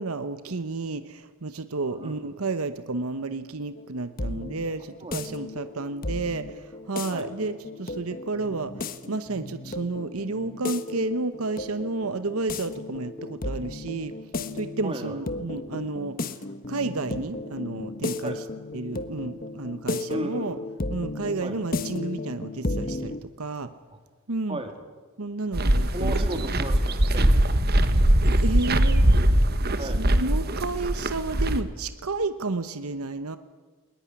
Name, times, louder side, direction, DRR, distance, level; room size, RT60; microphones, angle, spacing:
voice 1, 0.0-14.1 14.5-16.4 16.7-18.4 18.7-20.6 20.9-23.7 24.3-24.6 25.2-26.5 28.4-29.0 29.8-33.4, right 3 dB, 80° right, 11 dB, 1.0 m, -31 dB
voice 2, 1.9-2.3 5.0-5.2 7.1-7.3 14.8-15.2 18.2-18.4 20.1-20.5 21.4-21.6 23.9-24.0 24.5-24.7 25.9-27.5 29.8-30.0, right 1 dB, 25° right, 6 dB, 2.8 m, -35 dB
sound 1, 3.8-23.2, left 2 dB, 40° left, 1.2 m, -34 dB
sound 2, 25.5-31.6, right 1 dB, 45° right, 1.4 m, -21 dB
21.0 x 19.5 x 9.8 m, 1.4 s
head